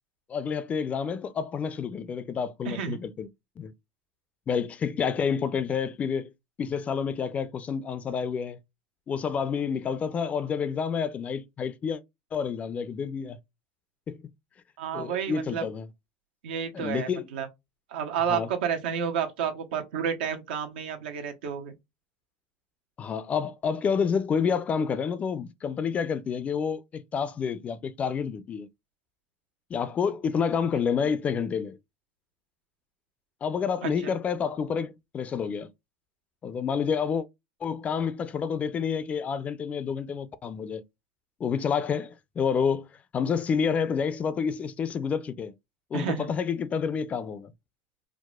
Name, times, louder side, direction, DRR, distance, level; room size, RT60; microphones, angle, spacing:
voice 1, 0.3-3.3 3.6-3.7 4.5-6.3 6.6-8.6 9.1-12.0 12.3-13.4 14.1-14.2 14.9-15.9 16.7-17.3 18.3-18.5 23.0-28.7 29.7-31.8 33.4-35.7 36.4-37.3 37.6-40.8 41.4-42.9 43.1-45.5 45.9-47.5, left 6 dB, 25° left, 0.4 m, -29 dB
voice 2, 2.6-3.0 14.8-15.6 16.4-17.5 17.9-21.7 33.8-34.1 45.9-46.3, right 7 dB, 85° right, 0.9 m, -31 dB
4.7 x 2.0 x 2.2 m
supercardioid pair, 125°, 5 cm